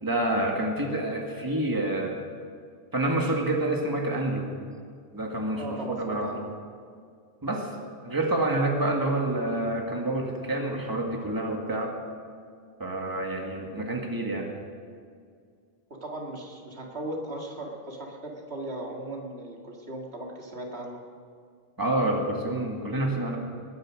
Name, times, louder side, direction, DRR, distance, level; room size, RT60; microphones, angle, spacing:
voice 1, 0.0-2.2 2.9-4.5 5.1-6.3 7.4-7.7 8.0-11.9 12.8-14.5 21.8-23.4, right 1 dB, 20° right, 1 dB, 1.7 m, -28 dB
voice 2, 5.6-6.4 15.9-21.0, right 1 dB, 90° right, 0 dB, 2.3 m, -37 dB
20.0 x 9.6 x 6.3 m, 2.2 s
omnidirectional pair, 1.0 m